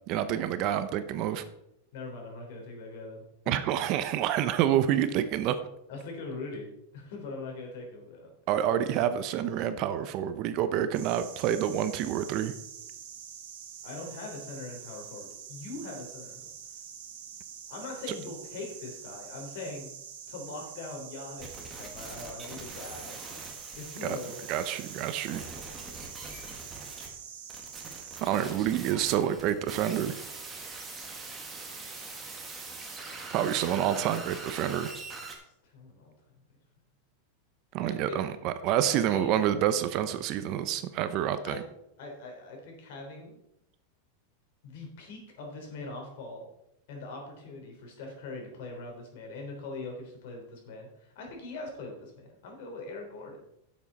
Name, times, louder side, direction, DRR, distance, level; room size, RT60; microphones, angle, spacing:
voice 1, 0.1-1.4 3.5-5.6 8.5-12.5 24.0-24.2 24.5-25.4 28.2-30.2 33.3-34.9 37.7-41.6, right 10 dB, 40° right, 11 dB, 0.7 m, -28 dB
voice 2, 1.9-3.5 5.9-6.7 6.9-8.3 13.8-16.4 17.7-19.9 20.3-23.2 23.8-24.4 26.4-27.0 35.7-36.1 37.9-38.2 38.9-39.4 41.4-41.6 42.0-43.4 44.6-46.4 46.9-53.4, left 3 dB, 60° left, 1 dB, 3.7 m, -42 dB
sound 1, 10.9-28.2, right 8 dB, 65° right, 1.9 m, -46 dB
sound 2, 21.4-27.1 27.5-35.4, right 3 dB, 15° right, 1.7 m, -43 dB
10.5 x 7.4 x 4.1 m, 0.82 s
supercardioid pair, 160°, 0 cm